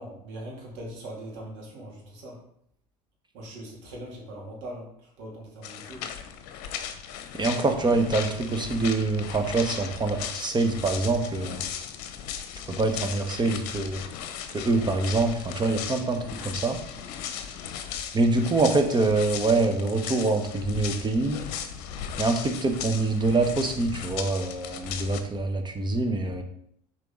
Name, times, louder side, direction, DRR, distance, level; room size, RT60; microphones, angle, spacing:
voice 1, 0.0-2.4 3.3-6.0, right 1 dB, 65° right, -2 dB, 2.8 m, -41 dB
sound 1, 5.6-25.2, left 8 dB, 65° left, 0.8 m, -37 dB
voice 2, 7.4-11.6 12.7-14.0 14.5-16.8 18.1-21.4 22.2-26.4, right 3 dB, 20° right, 5 dB, 1.2 m, -25 dB
6.8 x 4.6 x 3.8 m, 0.71 s
hypercardioid pair, 75°, 20 cm